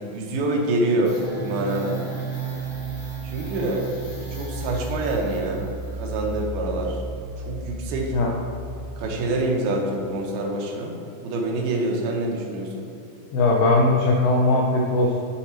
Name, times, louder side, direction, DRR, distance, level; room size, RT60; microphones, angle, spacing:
voice 1, 0.0-2.0 3.2-3.9 4.3-5.7 5.9-7.0 7.4-8.1 9.0-12.9, right 2 dB, 75° right, 0 dB, 2.5 m, -26 dB
sound 1, 1.0-9.5, right 2 dB, 55° left, 1.0 m, -33 dB
voice 2, 13.3-15.2, left 2 dB, 85° left, -2 dB, 2.0 m, -19 dB
7.2 x 4.4 x 4.3 m, 2.5 s
omnidirectional pair, 4.8 m